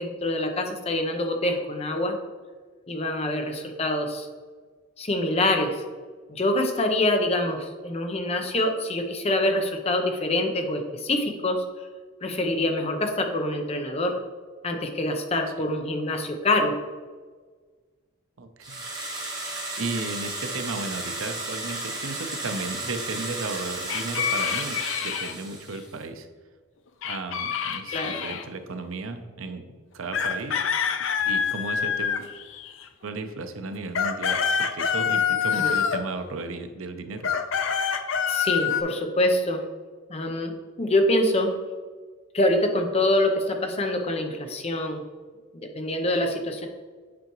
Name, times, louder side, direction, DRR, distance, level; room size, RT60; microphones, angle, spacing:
voice 1, 0.0-2.2 2.9-4.3 5.0-5.8 6.3-11.6 12.2-14.2 14.6-16.7 27.9-28.2 35.5-35.7 38.3-39.6 40.1-40.5 40.8-41.5 42.3-45.0 45.8-46.7, left 1 dB, 30° left, 4 dB, 0.7 m, -25 dB
voice 2, 18.4-18.8 19.4-26.3 27.0-29.6 29.9-30.6 31.3-32.3 33.0-37.3, right 3 dB, 90° right, 8 dB, 0.7 m, -34 dB
sound 1, 18.6-25.9, right 2 dB, 20° right, 1.3 m, -34 dB
sound 2, 23.9-25.3 27.0-28.4 30.1-32.8 33.7-36.1 37.2-38.8, left 7 dB, 70° left, 0.5 m, -26 dB
8.3 x 4.8 x 3.0 m, 1.5 s
head